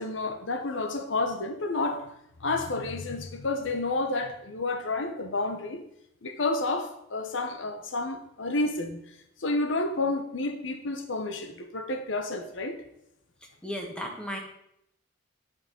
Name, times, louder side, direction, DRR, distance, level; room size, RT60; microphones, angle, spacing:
voice 1, 0.0-2.0 2.4-5.8 6.2-9.0 9.4-12.8, left 2 dB, 75° left, 7 dB, 1.0 m, -30 dB
voice 2, 13.6-14.4, equal, 5° left, 1 dB, 1.6 m, -34 dB
9.4 x 5.9 x 5.3 m, 0.78 s
head